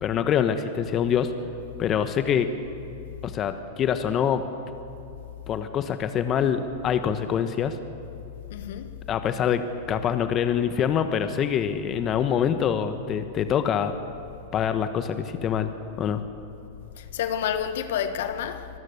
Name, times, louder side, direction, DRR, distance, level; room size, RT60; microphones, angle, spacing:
voice 1, 0.0-1.3 1.8-2.5 3.2-4.4 5.5-7.8 9.1-13.9 14.5-15.7 16.0-16.2, left 8 dB, 35° left, 1.2 m, -25 dB
voice 2, 8.5-8.9 17.0-18.7, left 9 dB, 65° left, 1.4 m, -29 dB
25.5 x 19.0 x 6.7 m
hypercardioid pair, 100°, 0 cm